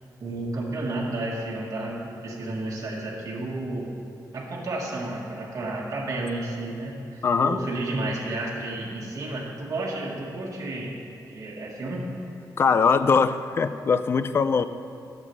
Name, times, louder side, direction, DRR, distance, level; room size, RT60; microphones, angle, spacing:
voice 1, 0.2-3.9 4.3-10.9 11.3-12.1, right 2 dB, 45° right, -4 dB, 1.6 m, -31 dB
voice 2, 7.2-7.6 12.6-14.6, left 5 dB, 35° left, 12 dB, 0.3 m, -21 dB
18.0 x 7.4 x 3.3 m, 2.6 s
wide cardioid pair, 180°, 7 cm